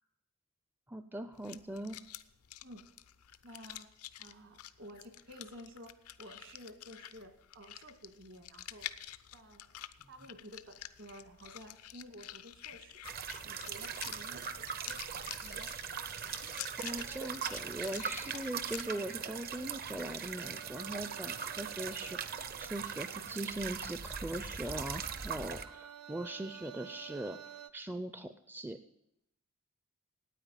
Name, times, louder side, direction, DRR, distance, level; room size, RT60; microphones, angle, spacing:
voice 1, 0.9-2.0 16.8-28.8, right 1 dB, 10° right, 10 dB, 0.4 m, -41 dB
sound 1, 1.3-18.8, left 13 dB, 85° left, 0.6 m, -49 dB
voice 2, 3.4-3.9 4.2-5.9 6.2-8.9 9.3-13.0 13.4-15.1 15.4-15.7, equal, 60° right, 7 dB, 1.8 m, -52 dB
sound 2, 13.0-25.6, right 7 dB, 45° right, 0.7 m, -40 dB
sound 3, 16.5-23.9 24.4-27.7, right 8 dB, 85° right, 0.6 m, -52 dB
9.2 x 9.2 x 8.9 m, 0.80 s
head